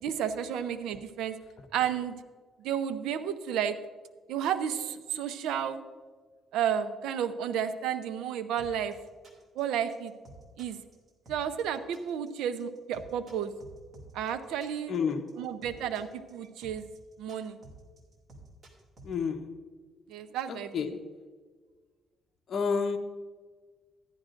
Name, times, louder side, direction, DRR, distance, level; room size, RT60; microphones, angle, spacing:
voice 1, 0.0-1.4 1.7-2.1 2.6-3.8 4.3-5.8 6.5-8.9 9.6-10.1 10.6-10.8 11.3-13.5 14.1-14.9 15.4-16.8 17.2-17.6 20.1-20.7, right 9 dB, 90° right, 10 dB, 0.6 m, -32 dB
sound 1, 8.6-19.1, right 2 dB, 45° right, 2.5 m, -51 dB
voice 2, 14.9-15.5 19.0-19.6 20.5-21.1 22.5-23.0, left 5 dB, 55° left, 3 dB, 0.9 m, -31 dB
14.0 x 10.5 x 2.5 m, 1.5 s
cardioid pair, 90°, 0 cm